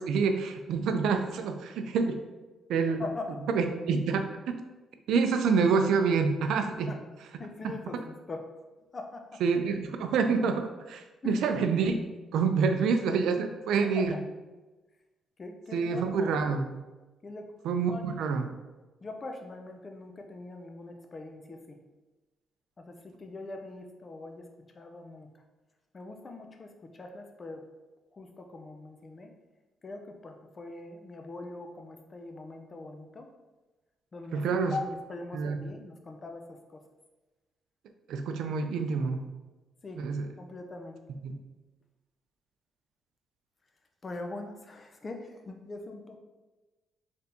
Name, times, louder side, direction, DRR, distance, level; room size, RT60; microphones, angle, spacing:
voice 1, 0.1-2.2 2.7-3.0 3.5-4.6 5.1-6.9 9.4-11.9 12.3-14.2 15.7-16.6 17.6-18.5 34.3-34.7 35.3-35.6 38.1-39.2 40.0-40.2 41.2-41.3, right 5 dB, 80° right, 7 dB, 0.4 m, -27 dB
voice 2, 2.9-3.4 6.9-7.0 7.4-8.5 8.9-9.4 11.2-11.4 13.9-14.2 15.4-16.3 17.2-17.5 17.9-18.0 19.0-21.8 22.8-24.5 24.7-25.3 25.9-27.6 28.1-29.3 29.8-33.3 34.1-34.5 34.7-36.8 39.8-40.0 40.4-41.0 44.0-46.2, left 2 dB, 35° left, 5 dB, 0.5 m, -42 dB
4.2 x 3.4 x 2.7 m, 1.2 s
cardioid pair, 90°, 0 cm